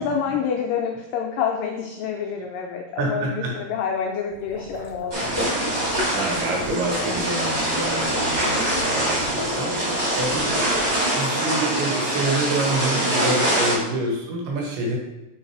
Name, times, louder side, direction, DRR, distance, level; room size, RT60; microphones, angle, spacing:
voice 1, 0.0-5.5 6.0-6.2 9.5-10.1 13.6-14.0, left 7 dB, 85° left, 1 dB, 1.9 m, -28 dB
voice 2, 3.0-3.5 6.1-9.7 10.2-10.6 11.1-15.0, right 2 dB, 80° right, -1 dB, 3.2 m, -27 dB
sound 1, 4.3-11.2, left 1 dB, 60° left, 1.9 m, -36 dB
sound 2, 5.1-13.7, right 1 dB, 30° right, 1.9 m, -24 dB
5.5 x 3.9 x 4.6 m, 1.0 s
omnidirectional pair, 4.5 m